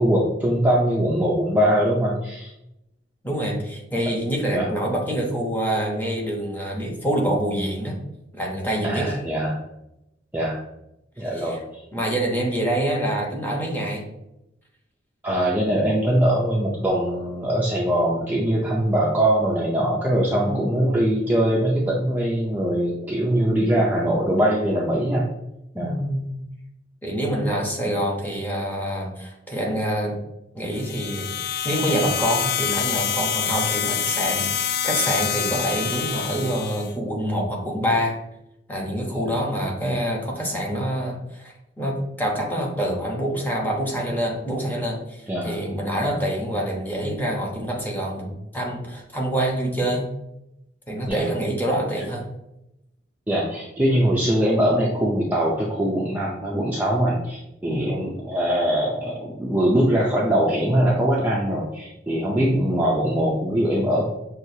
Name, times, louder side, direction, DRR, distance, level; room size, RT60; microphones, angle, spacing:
voice 1, 0.0-2.5 4.5-4.7 8.8-9.6 10.3-10.6 11.2-11.8 15.2-25.3 25.8-26.0 27.4-27.6 39.1-39.3 45.3-45.6 46.0-46.1 51.1-51.3 53.3-64.1, right 1 dB, 10° right, -4 dB, 0.5 m, -22 dB
voice 2, 3.2-8.0 8.4-9.1 11.2-11.6 11.9-14.0 20.4-21.0 23.4-23.7 25.7-26.4 27.0-30.2 30.5-31.4 31.6-38.2 38.7-50.1 50.9-52.3 57.7-57.9 62.3-62.7, equal, 10° left, -1 dB, 0.9 m, -26 dB
sound 1, 30.7-36.9, left 8 dB, 55° left, 0.3 m, -26 dB
6.2 x 2.4 x 2.7 m, 0.86 s
head